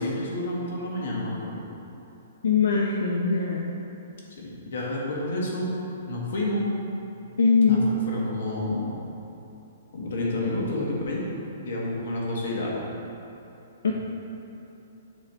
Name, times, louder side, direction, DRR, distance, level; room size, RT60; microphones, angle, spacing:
voice 1, 0.0-1.6 4.4-5.7 6.1-6.7 7.7-8.9 9.9-11.2 11.6-12.8 13.9-14.0, left 1 dB, 60° left, -3 dB, 1.3 m, -29 dB
voice 2, 2.4-3.7 7.4-7.8 13.8-13.9, left 5 dB, 85° left, -1 dB, 0.5 m, -21 dB
9.1 x 3.2 x 4.2 m, 2.9 s
hypercardioid pair, 175°, 0 cm